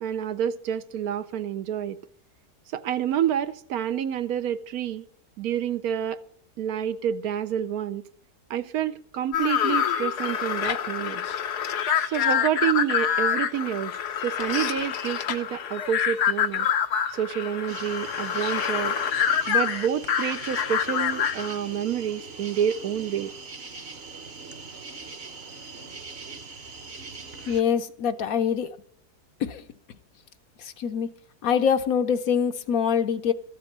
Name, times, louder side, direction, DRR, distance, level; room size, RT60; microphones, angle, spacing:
voice 1, 0.0-2.0 2.7-5.0 5.4-6.2 6.6-8.0 8.5-11.2 12.0-13.9 14.2-16.7 17.1-19.0 19.5-23.3, right 9 dB, 70° right, 1.2 m, -28 dB
sound 1, 9.3-21.6, left 8 dB, 85° left, 1.4 m, -26 dB
sound 2, 17.7-27.6, right 4 dB, 45° right, 1.2 m, -41 dB
voice 2, 27.5-28.7 29.4-29.6 30.6-31.1 31.4-33.3, left 7 dB, 65° left, 1.2 m, -24 dB
14.0 x 8.3 x 7.9 m
omnidirectional pair, 1.7 m